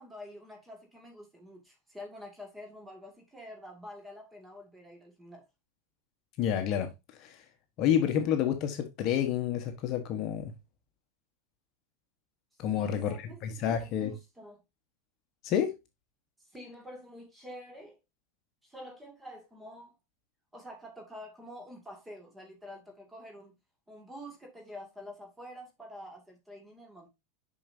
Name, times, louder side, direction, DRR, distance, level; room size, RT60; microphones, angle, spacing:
voice 1, 0.0-5.4 12.7-14.6 16.5-18.0 18.6-19.9 20.5-23.5 23.9-27.1, left 1 dB, 5° right, 2.3 m, -47 dB
voice 2, 6.4-6.9 7.2-7.4 7.8-10.5 12.6-13.1 13.4-14.1 15.4-15.7, left 9 dB, 40° left, 1.2 m, -29 dB
7.0 x 5.9 x 2.7 m
supercardioid pair, 145°, 0 cm